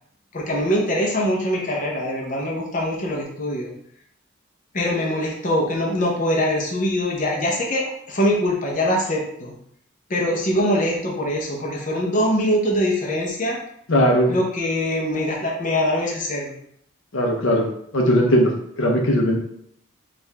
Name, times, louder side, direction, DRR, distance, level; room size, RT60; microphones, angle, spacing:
voice 1, 0.3-3.7 4.7-9.5 10.1-13.6 14.3-16.5, equal, 40° left, -2 dB, 0.7 m, -23 dB
voice 2, 13.9-14.3 17.1-17.6 17.9-18.5 18.8-19.4, equal, 75° left, 0 dB, 0.7 m, -18 dB
4.5 x 2.5 x 3.3 m, 0.69 s
head